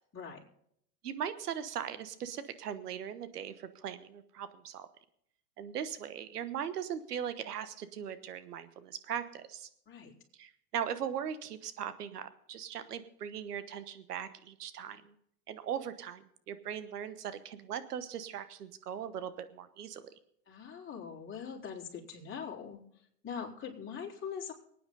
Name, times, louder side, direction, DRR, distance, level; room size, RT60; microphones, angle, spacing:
voice 1, 1.0-4.9 5.6-9.7 10.4-15.2 15.5-20.0, right 9 dB, 85° right, 12 dB, 1.3 m, -39 dB
voice 2, 20.5-22.8 23.2-24.5, left 7 dB, 25° left, -2 dB, 4.4 m, -42 dB
23.0 x 9.3 x 4.0 m, 0.70 s
hypercardioid pair, 95°, 46 cm